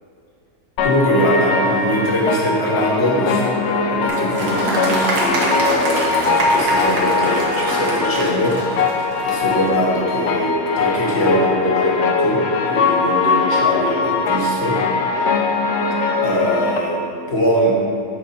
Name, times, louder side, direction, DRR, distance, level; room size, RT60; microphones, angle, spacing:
sound 1, 0.8-16.8, left 4 dB, 65° left, 0.7 m, -21 dB
voice 1, 0.8-14.8 15.1-15.2 16.2-17.7, equal, 45° left, -3 dB, 1.4 m, -22 dB
Applause, 4.1-9.6, right 1 dB, 80° right, 1.8 m, -24 dB
11.5 x 4.3 x 4.2 m, 2.4 s
omnidirectional pair, 1.7 m